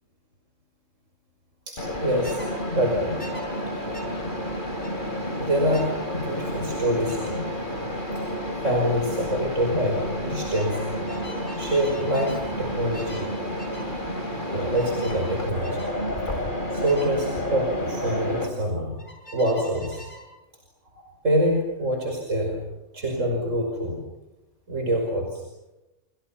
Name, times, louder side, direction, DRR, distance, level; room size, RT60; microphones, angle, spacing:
voice 1, 1.7-2.4 2.7-3.2 3.8-4.0 5.4-7.6 8.6-10.8 11.6-13.3 14.5-15.8 16.7-19.0 19.3-20.0 21.2-22.6 22.9-24.1 24.7-25.4, equal, 80° right, 1 dB, 5.8 m, -25 dB
Mechanisms, 1.8-18.5, equal, 40° left, 4.7 m, -30 dB
sound 1, 2.2-2.5 3.2-3.5 3.9-4.1 4.8-5.0 5.7-6.0 7.1-7.3 8.7-9.0 9.3-9.6 10.5-12.5 12.9-13.3 13.6-13.9 14.7-15.2 15.6-15.9 16.9-17.1 19.0-20.3, equal, 25° left, 7.5 m, -43 dB
30.0 x 28.0 x 5.8 m, 0.96 s
omnidirectional pair, 1.3 m